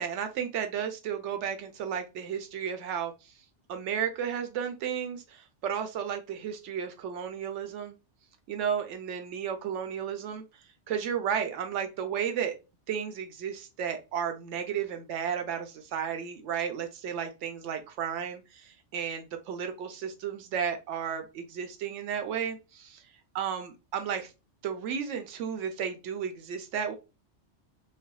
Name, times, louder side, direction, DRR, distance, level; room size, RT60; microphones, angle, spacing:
voice 1, 0.0-3.1 3.7-8.0 8.5-10.4 10.9-12.5 12.9-23.0 23.3-24.3 24.6-26.9, right 8 dB, 90° right, 7 dB, 1.0 m, -33 dB
3.3 x 2.0 x 2.2 m, 0.27 s
omnidirectional pair, 1.2 m